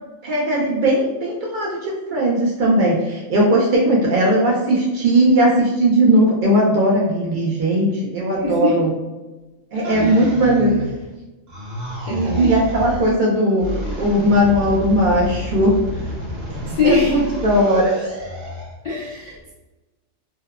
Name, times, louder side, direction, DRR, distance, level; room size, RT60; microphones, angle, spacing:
voice 1, 0.2-8.9 9.7-10.7 12.1-13.7 14.0-15.8 16.8-17.9, right 1 dB, 70° right, -3 dB, 0.4 m, -18 dB
voice 2, 8.3-8.8 9.7-10.3 12.1-12.5 16.6-17.2 18.5-18.6 18.8-19.5, left 4 dB, 80° left, -6 dB, 0.4 m, -23 dB
sound 1, 9.8-11.2 11.5-13.1 13.6-18.8, left 1 dB, 50° right, 1.1 m, -29 dB
2.7 x 2.0 x 2.3 m, 1.1 s
omnidirectional pair, 1.4 m